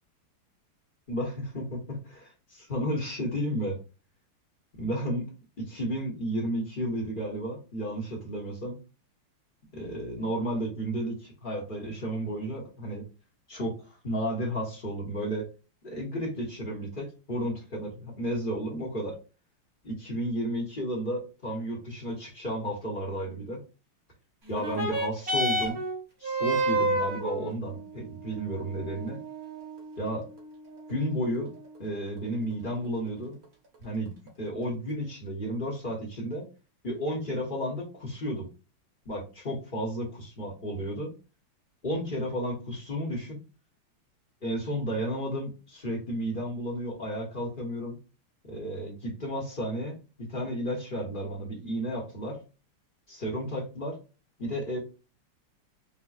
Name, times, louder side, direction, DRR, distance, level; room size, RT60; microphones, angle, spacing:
voice 1, 1.1-3.8 4.7-5.3 5.6-8.8 9.7-13.0 13.5-13.8 14.0-15.5 15.8-19.2 19.8-23.6 24.5-25.8 26.2-29.2 30.0-30.2 30.9-31.5 31.8-33.4 33.8-36.4 36.8-38.5 39.0-41.1 41.8-43.4 44.4-48.0 48.4-52.4 53.1-54.0 54.4-54.8, equal, 30° left, -3 dB, 1.0 m, -32 dB
sound 1, 24.5-33.4 34.3-34.4, right 1 dB, 35° right, 1.4 m, -32 dB
5.7 x 2.2 x 2.4 m, 0.32 s
omnidirectional pair, 2.4 m